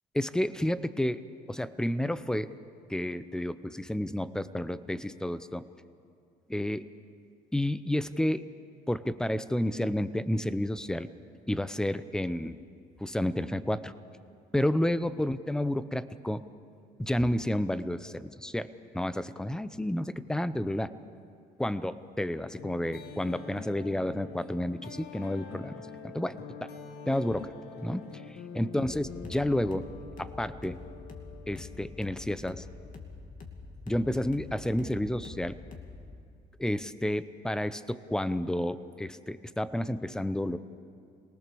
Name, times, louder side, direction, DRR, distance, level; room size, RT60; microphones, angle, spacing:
voice 1, 0.2-1.2 1.5-2.5 2.9-5.7 6.5-6.9 7.5-8.5 8.9-11.1 11.5-12.6 13.0-13.9 14.5-16.4 17.0-20.9 21.6-25.8 26.1-26.7 27.1-27.5 27.8-28.0 28.5-29.9 30.2-30.8 31.5-32.7 33.9-35.6 36.6-40.6, left 1 dB, 5° left, 14 dB, 0.7 m, -30 dB
sound 1, 22.6-33.2, left 5 dB, 70° left, 1.6 m, -46 dB
sound 2, 28.8-36.2, left 4 dB, 50° left, 2.6 m, -46 dB
26.0 x 19.0 x 7.0 m, 2.5 s
cardioid pair, 110°, 17 cm